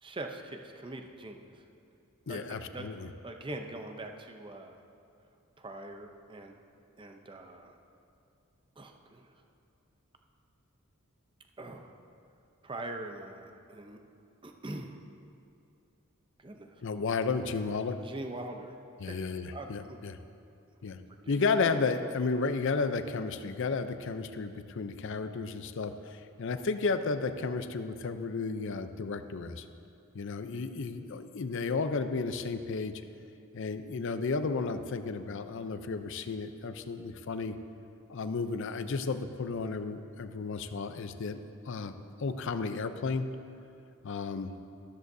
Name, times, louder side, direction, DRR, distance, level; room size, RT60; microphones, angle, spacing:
voice 1, 0.0-1.6 2.3-2.9 3.2-4.8 5.6-6.6 7.0-7.8 8.8-9.3 11.6-12.0 12.6-14.0 14.4-15.0 16.4-16.8 17.9-19.1 19.5-20.0 21.1-21.5, right 2 dB, 25° right, 4 dB, 0.6 m, -43 dB
voice 2, 2.3-3.1 16.8-18.0 19.0-20.2 20.8-21.0 21.3-29.7 30.1-33.0 33.5-37.6 38.1-43.3 44.0-44.5, left 4 dB, 60° left, 10 dB, 0.5 m, -33 dB
13.5 x 12.5 x 2.7 m, 2.7 s
head